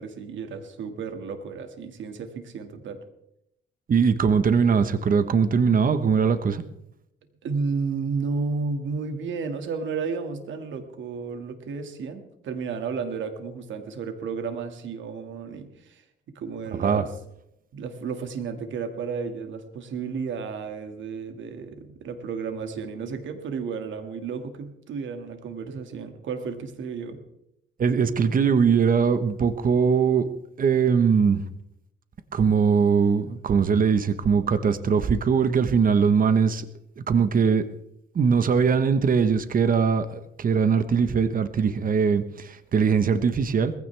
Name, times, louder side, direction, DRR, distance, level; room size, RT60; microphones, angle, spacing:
voice 1, 0.0-3.0 7.4-16.0 16.4-17.1 17.7-27.2, right 5 dB, 70° right, 7 dB, 2.1 m, -32 dB
voice 2, 3.9-6.6 16.8-17.0 27.8-30.3 30.6-31.4 32.3-36.7 37.0-37.6 38.1-43.7, right 6 dB, 45° right, 11 dB, 1.2 m, -21 dB
20.0 x 15.5 x 3.5 m, 0.79 s
cardioid pair, 90°, 20 cm